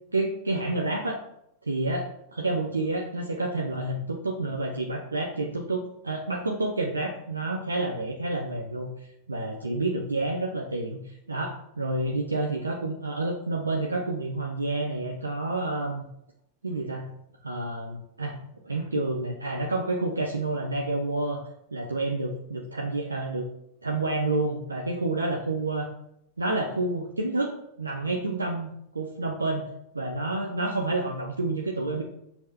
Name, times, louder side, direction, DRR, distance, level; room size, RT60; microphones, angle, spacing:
voice 1, 0.1-1.2 1.6-2.1 2.4-8.9 9.3-16.0 16.6-17.1 17.4-18.4 18.6-21.4 21.7-23.4 23.8-25.9 26.4-28.7 28.9-29.7 29.9-32.0, right 2 dB, 80° right, 2 dB, 0.6 m, -29 dB
6.5 x 2.9 x 5.3 m, 0.78 s
figure-of-eight pair, 90°, 0 cm